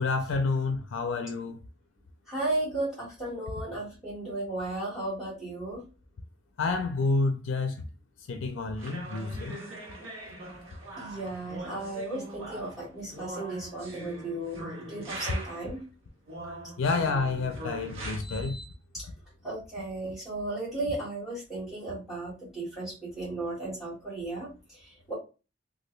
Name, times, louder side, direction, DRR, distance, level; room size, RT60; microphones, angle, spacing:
voice 1, 0.0-1.6 6.6-7.8 8.3-9.6 16.8-18.6, left 3 dB, 70° left, 0.4 m, -29 dB
voice 2, 2.3-5.8 11.0-14.6 14.9-15.8 18.2-18.7 18.9-19.1 19.4-25.1, right 2 dB, ahead, 1.6 m, -35 dB
sound 1, 8.8-15.7 16.3-18.2, right 1 dB, 80° right, 1.1 m, -41 dB
2.9 x 2.5 x 3.1 m
head